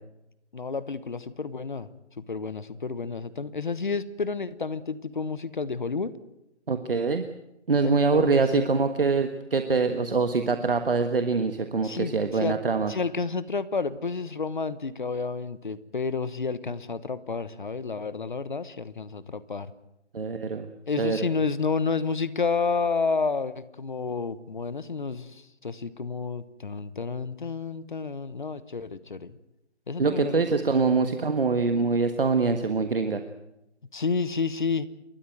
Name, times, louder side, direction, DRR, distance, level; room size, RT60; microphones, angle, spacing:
voice 1, 0.5-1.9 2.2-6.1 7.8-8.7 11.8-12.6 12.9-19.7 20.9-29.4 29.9-30.4 30.9-31.1 33.9-34.9, left 4 dB, 45° left, 15 dB, 1.2 m, -30 dB
voice 2, 6.7-7.2 7.7-12.9 20.1-20.7 21.0-21.2 30.0-33.2, right 4 dB, 50° right, 8 dB, 1.5 m, -24 dB
29.5 x 13.0 x 9.2 m, 0.88 s
figure-of-eight pair, 160°, 35 cm